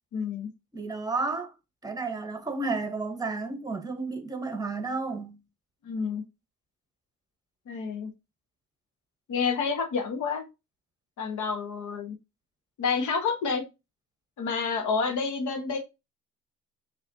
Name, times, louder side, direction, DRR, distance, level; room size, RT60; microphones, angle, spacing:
voice 1, 0.1-0.5 5.8-6.2 7.7-8.1 9.3-10.5 11.2-12.2 12.8-13.6 14.4-15.8, left 5 dB, 75° left, 1.3 m, -29 dB
voice 2, 0.7-1.5 1.8-5.4, right 3 dB, 10° right, 1.2 m, -32 dB
5.7 x 3.1 x 2.8 m
cardioid pair, 90°, 30 cm